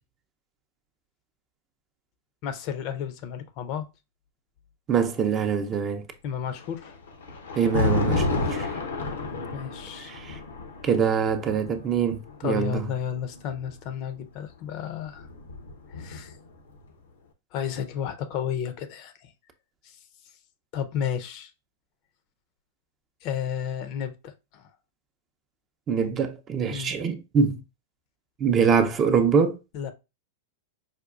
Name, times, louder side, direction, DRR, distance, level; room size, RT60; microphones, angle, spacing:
voice 1, 2.4-3.9 6.2-6.9 9.5-10.1 12.4-15.3 15.9-16.4 17.5-19.3 19.8-19.9 20.7-21.5 23.2-24.6 26.7-26.9 29.7-29.9, left 8 dB, 50° left, 0.5 m, -32 dB
voice 2, 4.9-6.1 7.6-8.7 10.0-10.4 10.8-12.9 25.9-27.6 28.4-29.6, right 6 dB, 30° right, 0.5 m, -24 dB
Thunder, 6.5-13.7 14.8-16.5, left 3 dB, 85° left, 0.7 m, -31 dB
4.9 x 2.3 x 2.3 m
hypercardioid pair, 110°, 0 cm